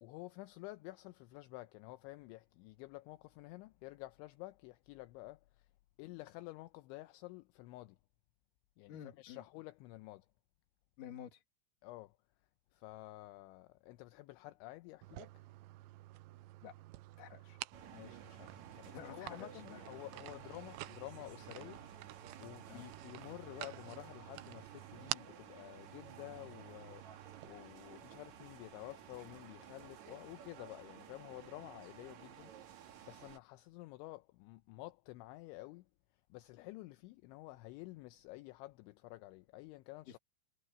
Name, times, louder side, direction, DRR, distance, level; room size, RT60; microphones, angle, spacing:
voice 1, 0.0-5.7 6.0-8.0 8.8-10.3 11.8-12.2 12.7-15.4 17.9-21.8 22.4-27.1 27.4-32.5 33.1-35.9 36.3-40.2, left 19 dB, 80° left, 2.8 m, -51 dB
voice 2, 8.9-9.4 11.0-11.4 16.6-16.7 17.2-17.6 18.9-20.3 22.7-22.9 40.1-40.2, left 9 dB, 50° left, 3.1 m, -51 dB
sound 1, 15.0-27.5, right 18 dB, 85° right, 2.7 m, -50 dB
sound 2, 17.7-33.4, right 9 dB, 65° right, 1.8 m, -55 dB
omnidirectional pair, 5.8 m